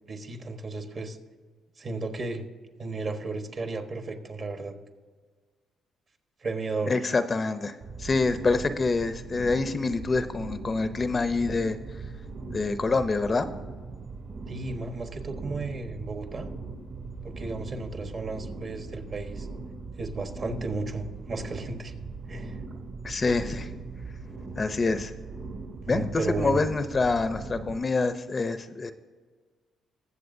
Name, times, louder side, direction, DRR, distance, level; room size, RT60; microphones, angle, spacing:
voice 1, 0.0-1.2 1.8-2.4 2.8-4.7 6.4-7.0 14.5-16.5 17.2-19.5 20.0-21.9 22.3-22.6 25.8-26.7, right 3 dB, 45° right, 6 dB, 1.3 m, -34 dB
voice 2, 6.9-11.8 12.5-13.5 23.0-23.7 24.6-25.1 25.9-28.9, left 3 dB, 35° left, 10 dB, 0.6 m, -26 dB
sound 1, 7.8-27.8, right 4 dB, 60° right, 2.1 m, -39 dB
21.0 x 7.6 x 2.7 m, 1.5 s
cardioid pair, 90°, 0 cm